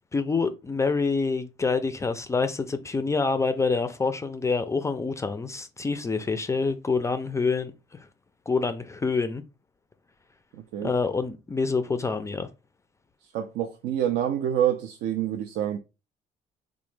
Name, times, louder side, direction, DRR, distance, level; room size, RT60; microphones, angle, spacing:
voice 1, 0.1-8.1 8.5-9.4 10.8-12.5, left 4 dB, 15° left, 0.3 m, -27 dB
voice 2, 13.3-15.8, right 10 dB, 80° right, 0.4 m, -27 dB
2.9 x 2.1 x 3.2 m
cardioid pair, 110°, 17 cm